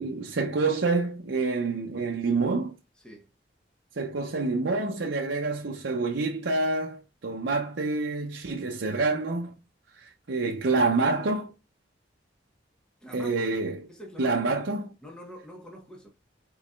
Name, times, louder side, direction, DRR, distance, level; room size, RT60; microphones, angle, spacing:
voice 1, 0.0-2.7 4.0-9.5 10.0-11.5 13.1-13.9 14.2-14.9, right 3 dB, 70° right, 0.7 m, -27 dB
voice 2, 13.0-13.4 13.9-14.4 15.0-16.1, equal, 5° left, 1.1 m, -45 dB
4.7 x 4.1 x 2.3 m
head